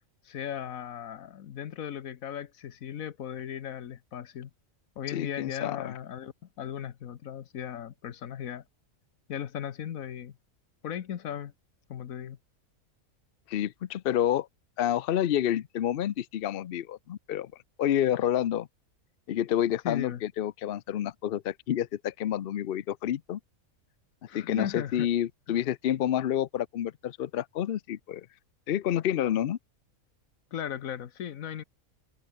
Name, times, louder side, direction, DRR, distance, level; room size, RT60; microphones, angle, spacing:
voice 1, 0.2-4.5 5.0-8.6 9.3-10.3 10.8-11.5 11.9-12.4 19.8-20.2 24.3-25.1 25.5-25.6 30.5-31.6, left 9 dB, 75° left, 1.4 m, -37 dB
voice 2, 5.1-5.9 13.5-14.5 14.8-17.5 17.8-18.7 19.3-23.4 24.3-28.3 28.7-29.6, left 11 dB, 55° left, 0.7 m, -29 dB
omnidirectional pair, 1.5 m